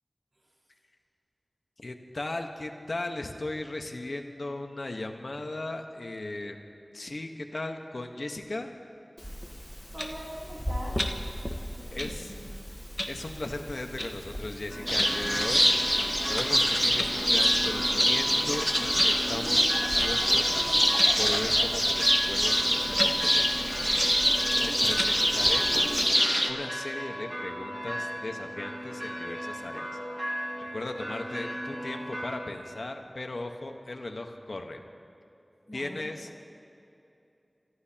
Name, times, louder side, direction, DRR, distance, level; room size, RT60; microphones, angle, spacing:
voice 1, 1.8-6.6 6.9-8.7 11.9-12.3 13.1-15.6 16.2-20.6 21.2-23.8 24.8-26.0 26.5-30.0 30.6-34.8 35.7-36.3, left 2 dB, 75° left, 4 dB, 1.2 m, -37 dB
Clock, 9.2-26.0, equal, 10° left, 1.3 m, -37 dB
voice 2, 9.9-11.0 11.4-11.5 11.8-12.5 24.4-25.4 35.7-36.1, equal, 85° right, -5 dB, 4.3 m, -43 dB
sound 1, 14.7-32.4, equal, 30° right, 2.8 m, -37 dB
sound 2, 14.9-26.5, equal, 5° right, 1.0 m, -25 dB
29.5 x 14.5 x 2.9 m, 2.8 s
wide cardioid pair, 45°, 0 cm